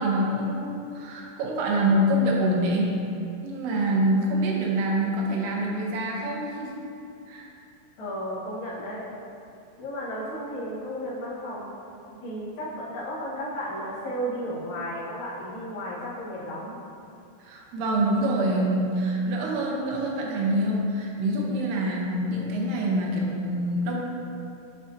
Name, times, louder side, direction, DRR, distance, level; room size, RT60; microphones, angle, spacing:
voice 1, 0.0-2.9 3.4-6.7 7.3-7.5 17.4-24.0, right 1 dB, 75° right, -2 dB, 2.7 m, -25 dB
voice 2, 8.0-9.1 9.8-11.7 12.1-16.8, equal, 80° left, -8 dB, 1.1 m, -34 dB
8.8 x 4.9 x 2.7 m, 2.6 s
omnidirectional pair, 4.8 m